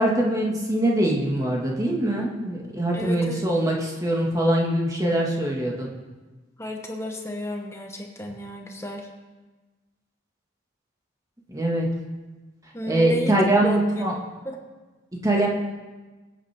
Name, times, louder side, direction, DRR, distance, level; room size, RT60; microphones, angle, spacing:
voice 1, 0.0-5.9 11.5-11.9 12.9-14.1 15.2-15.5, right 1 dB, 15° right, -2 dB, 1.7 m, -23 dB
voice 2, 2.9-3.5 6.6-9.1 12.7-14.1 14.4-14.6, equal, 15° left, 2 dB, 1.0 m, -32 dB
21.5 x 8.6 x 3.5 m, 1.2 s
head